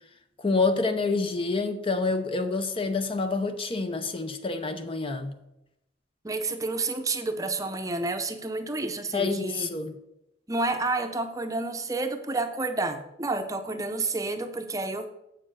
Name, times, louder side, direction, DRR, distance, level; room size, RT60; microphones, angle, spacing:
voice 1, 0.4-5.3 9.1-9.9, left 3 dB, 30° left, 0.6 m, -27 dB
voice 2, 6.2-9.7 10.5-15.1, right 3 dB, 20° right, 0.7 m, -30 dB
7.4 x 6.8 x 6.3 m
head